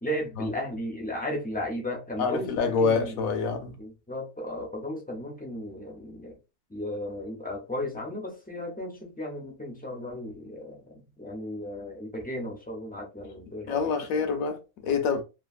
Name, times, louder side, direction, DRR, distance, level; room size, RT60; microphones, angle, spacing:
voice 1, 0.0-3.2 3.8-6.3 6.7-14.3, left 1 dB, 15° left, 0.3 m, -35 dB
voice 2, 2.2-3.8 13.7-15.2, left 5 dB, 70° left, 1.1 m, -26 dB
3.0 x 2.4 x 2.4 m
omnidirectional pair, 1.6 m